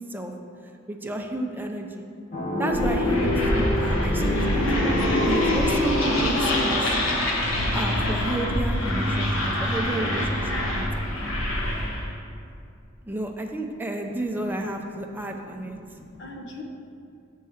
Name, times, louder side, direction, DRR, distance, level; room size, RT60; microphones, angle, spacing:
voice 1, 0.9-2.0 2.6-5.0 5.2-6.9 7.7-11.0 13.0-15.8, right 1 dB, 10° right, 2 dB, 0.5 m, -31 dB
sound 1, 2.3-8.2, left 1 dB, 40° left, 1.2 m, -27 dB
sound 2, 2.7-12.1, left 1 dB, 80° left, 1.2 m, -25 dB
voice 2, 14.1-16.6, left 2 dB, 60° left, 2 dB, 0.9 m, -44 dB
6.7 x 4.7 x 6.3 m, 2.5 s
head